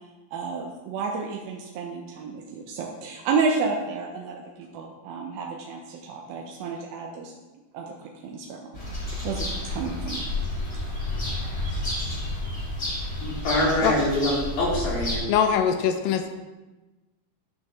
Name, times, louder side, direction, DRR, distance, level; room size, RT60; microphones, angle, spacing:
voice 1, 0.3-7.3 7.7-7.9 8.2-8.8 9.2-10.3 11.9-12.0, right 4 dB, 80° right, 0 dB, 2.3 m, -31 dB
sound 1, 8.7-15.2, left 1 dB, 20° left, 2.5 m, -30 dB
voice 2, 13.2-15.2, left 1 dB, 60° left, -6 dB, 4.2 m, -24 dB
voice 3, 15.3-16.3, left 8 dB, 85° left, 7 dB, 2.1 m, -22 dB
12.0 x 6.3 x 3.2 m, 1.2 s
omnidirectional pair, 4.7 m